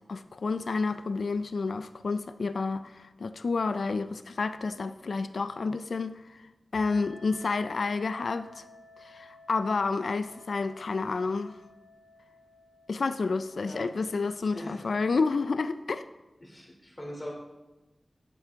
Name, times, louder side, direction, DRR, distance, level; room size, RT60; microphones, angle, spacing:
voice 1, 0.1-8.6 9.0-11.6 12.9-16.1, left 4 dB, 80° left, 0.3 m, -30 dB
sound 1, 6.7-14.9, left 2 dB, 50° left, 1.7 m, -54 dB
voice 2, 14.5-14.8 16.4-17.3, equal, 25° left, 2.7 m, -41 dB
10.0 x 8.3 x 3.5 m
wide cardioid pair, 80°, 0 cm